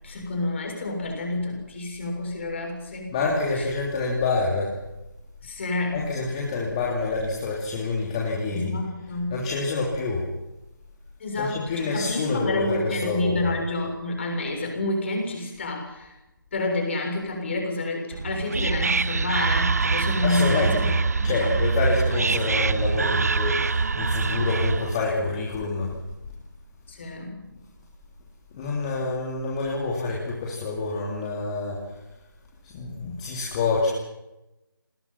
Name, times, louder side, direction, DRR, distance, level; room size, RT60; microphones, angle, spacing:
voice 1, 0.0-3.7 5.4-6.1 8.5-9.4 11.2-16.2 16.5-20.9 21.2-21.6 26.9-27.4, left 2 dB, 30° left, 1 dB, 7.0 m, -29 dB
voice 2, 3.1-4.7 5.9-8.8 9.3-10.3 11.4-13.5 20.2-20.9 21.2-25.9 28.5-31.8 32.7-33.9, left 3 dB, 15° left, -3 dB, 3.0 m, -27 dB
Whispering, 18.1-25.0, right 4 dB, 45° right, 0.8 m, -24 dB
28.0 x 19.5 x 6.0 m, 0.95 s
figure-of-eight pair, 165°, 12 cm